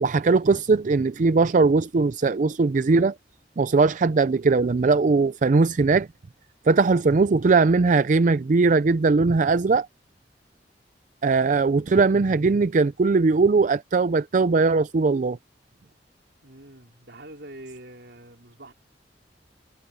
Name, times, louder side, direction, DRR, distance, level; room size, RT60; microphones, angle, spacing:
voice 1, 0.0-3.1 3.6-6.1 6.7-9.9 11.2-15.4, right 4 dB, 45° right, 0.4 m, -20 dB
voice 2, 16.4-18.7, right 1 dB, 70° right, 4.7 m, -44 dB
head